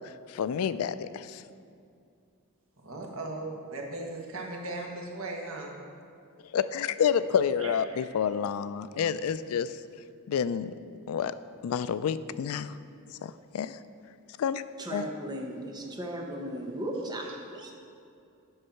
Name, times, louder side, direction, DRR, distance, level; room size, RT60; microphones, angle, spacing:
voice 1, 0.3-1.4 6.5-9.7 10.3-10.7 11.1-11.3 11.6-12.7 13.2-13.8 14.4-14.6 14.9-15.1, left 7 dB, 85° left, 15 dB, 0.3 m, -29 dB
voice 2, 2.8-5.8 7.6-8.1, right 2 dB, 75° right, 0 dB, 1.3 m, -38 dB
voice 3, 14.8-17.7, right 1 dB, 20° right, 0 dB, 0.9 m, -36 dB
8.0 x 5.4 x 5.8 m, 2.4 s
head